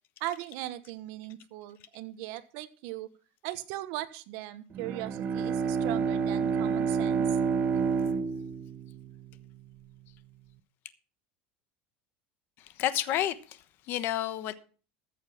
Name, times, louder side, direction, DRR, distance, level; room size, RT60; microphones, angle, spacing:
voice 1, 0.2-3.1 3.4-7.4, right 15 dB, 60° right, 1.3 m, -39 dB
Bowed string instrument, 4.7-9.5, right 6 dB, 35° right, 0.8 m, -29 dB
voice 2, 12.6-14.5, left 12 dB, 45° left, 1.1 m, -31 dB
14.0 x 7.2 x 5.9 m
cardioid pair, 155°, 5 cm